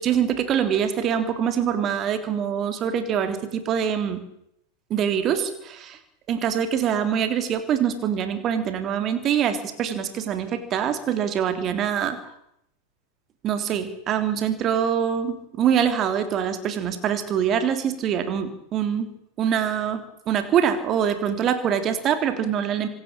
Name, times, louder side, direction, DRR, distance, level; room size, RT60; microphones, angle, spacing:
voice 1, 0.0-4.2 4.9-6.0 6.3-12.2 13.4-19.1 19.4-22.9, right 8 dB, 30° right, 9 dB, 3.4 m, -24 dB
25.5 x 16.0 x 8.8 m, 0.76 s
figure-of-eight pair, 90°, 0 cm